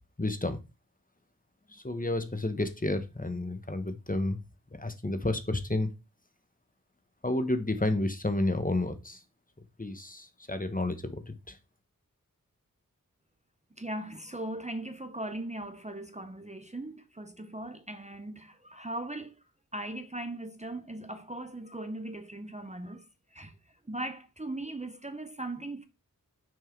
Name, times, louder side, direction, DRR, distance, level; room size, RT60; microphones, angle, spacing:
voice 1, 0.2-0.6 1.7-4.4 4.8-5.9 7.2-9.2 9.8-11.6, left 2 dB, 25° left, 1.1 m, -31 dB
voice 2, 13.8-19.3 19.7-23.0 23.3-23.5 23.9-25.9, right 1 dB, 20° right, 0.7 m, -39 dB
6.2 x 4.6 x 4.5 m
wide cardioid pair, 45°, 34 cm